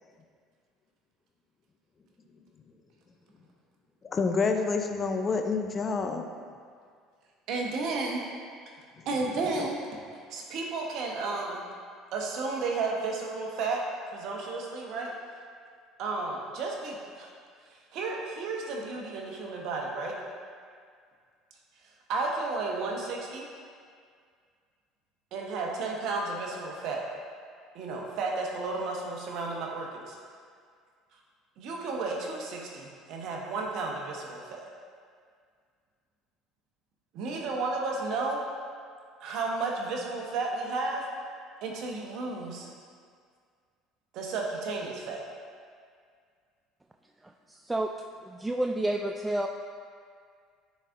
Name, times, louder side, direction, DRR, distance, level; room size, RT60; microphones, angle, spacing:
voice 1, 4.0-6.3 9.6-9.7, left 4 dB, 35° left, 5 dB, 0.6 m, -28 dB
voice 2, 7.5-8.2 9.0-10.0 10.3-11.6 12.1-13.8 14.1-15.1 16.0-17.3 17.7-20.1 22.1-23.4 25.3-27.0 27.7-30.2 31.6-34.6 37.1-38.4 39.2-41.1 41.6-42.7 44.1-45.2, right 3 dB, 60° right, -1 dB, 1.1 m, -33 dB
voice 3, 48.3-49.5, right 1 dB, 15° right, 3 dB, 0.3 m, -29 dB
9.9 x 4.1 x 2.6 m, 2.1 s
hypercardioid pair, 70°, 0 cm